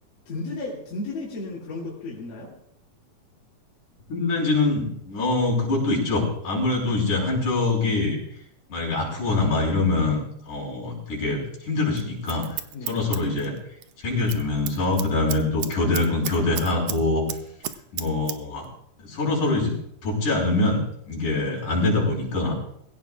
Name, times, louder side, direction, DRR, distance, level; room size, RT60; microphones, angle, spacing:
voice 1, 0.3-2.5 12.7-13.0, left 2 dB, 85° left, -6 dB, 4.6 m, -33 dB
voice 2, 4.1-8.2 8.7-12.5 12.9-13.5 14.0-17.3 17.9-18.6 19.0-19.7 20.0-22.6, left 2 dB, 65° left, -3 dB, 6.8 m, -24 dB
Scissors, 12.0-13.9 14.2-14.4 14.7-17.0 17.3-18.4 18.6-18.7, right 11 dB, 85° right, 1.4 m, -33 dB
21.5 x 16.5 x 2.4 m, 0.69 s
omnidirectional pair, 3.8 m